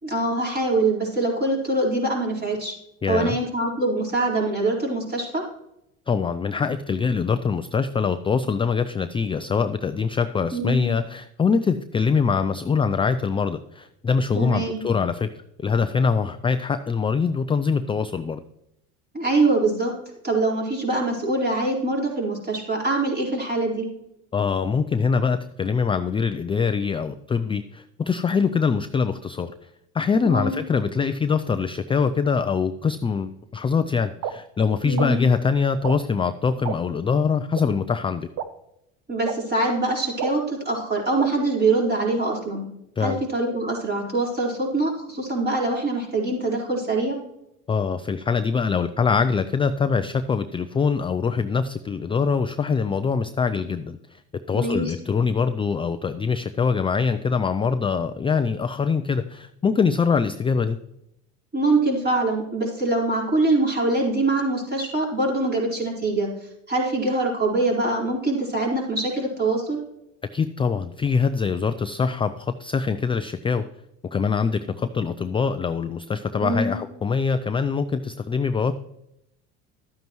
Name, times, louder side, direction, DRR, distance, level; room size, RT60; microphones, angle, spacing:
voice 1, 0.0-2.7 3.1-5.4 10.5-10.9 14.4-14.8 19.1-19.9 20.2-23.9 30.2-30.5 34.9-35.3 39.1-42.6 43.0-47.2 54.5-54.9 61.5-66.3 66.7-69.8 76.4-76.8, right 2 dB, 25° right, -3 dB, 4.4 m, -24 dB
voice 2, 3.0-3.4 6.1-15.3 15.6-18.4 24.3-29.5 29.9-38.3 43.0-43.2 47.7-54.2 54.5-60.8 70.3-73.6 74.1-78.8, left 5 dB, 15° left, 10 dB, 0.4 m, -23 dB
sound 1, 34.2-34.3 35.0-35.1 35.8-36.0 36.6-36.8 37.5-37.6 38.4-38.5 39.2-39.3 40.2-40.3 41.2-41.3, right 9 dB, 55° right, 0.9 m, -28 dB
12.5 x 9.2 x 3.1 m, 0.83 s
supercardioid pair, 85°, 35 cm